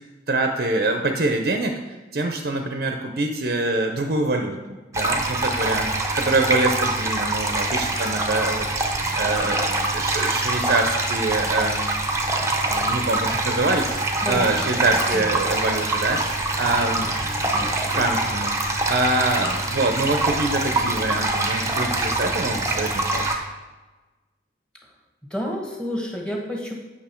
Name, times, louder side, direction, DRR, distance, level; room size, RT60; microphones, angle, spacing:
voice 1, 0.3-11.9 12.7-16.2 16.5-17.1 17.8-23.3, right 2 dB, 55° right, 4 dB, 0.6 m, -25 dB
sound 1, 4.9-23.4, right 2 dB, 15° right, 0.7 m, -24 dB
voice 2, 14.2-14.7 15.1-15.3 19.5-19.6 25.3-26.7, equal, 5° left, 0 dB, 1.2 m, -29 dB
8.4 x 6.0 x 4.4 m, 1.2 s
head